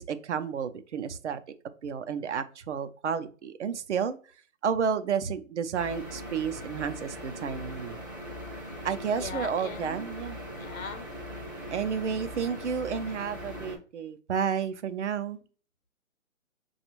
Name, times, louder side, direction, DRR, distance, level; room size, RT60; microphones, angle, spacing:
voice 1, 0.0-1.4 1.8-4.2 4.6-8.0 8.8-10.4 11.7-15.4, right 7 dB, 60° right, 10 dB, 0.6 m, -31 dB
sound 1, 5.7-13.8, equal, 15° right, 0.4 m, -40 dB
voice 2, 9.0-10.1 10.6-11.1, left 5 dB, 90° left, 9 dB, 0.8 m, -40 dB
5.2 x 2.3 x 2.9 m, 0.38 s
hypercardioid pair, 145°, 40 cm